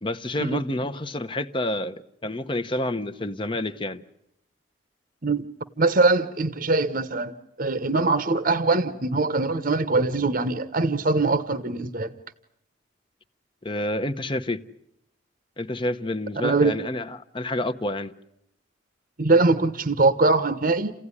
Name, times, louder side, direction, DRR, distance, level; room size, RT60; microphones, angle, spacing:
voice 1, 0.0-4.0 13.6-14.6 15.6-18.1, left 1 dB, 25° left, 0.9 m, -29 dB
voice 2, 5.8-7.3 7.6-12.1 16.4-16.7 19.2-20.9, right 3 dB, 45° right, 0.9 m, -22 dB
29.5 x 16.0 x 9.8 m
head